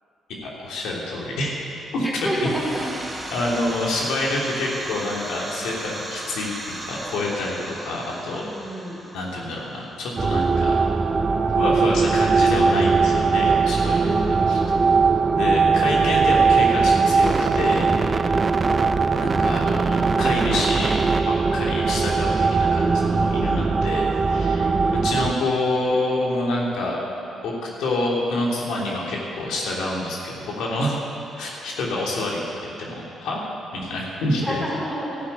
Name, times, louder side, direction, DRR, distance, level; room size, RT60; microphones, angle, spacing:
voice 1, 0.4-1.5 1.9-2.3 3.3-8.5 9.1-11.0 11.5-14.1 14.5-14.6 15.3-18.0 19.1-27.0 27.4-31.0 31.3-33.4 33.7-34.6, left 2 dB, 85° left, -3 dB, 3.1 m, -27 dB
voice 2, 2.0-2.8 8.4-9.0 14.0-14.9 24.5-25.1 34.4-35.2, equal, 5° left, -4 dB, 4.3 m, -30 dB
sound 1, 2.2-10.8, right 1 dB, 15° right, 2.9 m, -37 dB
sound 2, 10.2-25.3, right 4 dB, 35° right, 0.7 m, -20 dB
13.0 x 11.0 x 9.3 m, 2.7 s
cardioid pair, 90°, 0 cm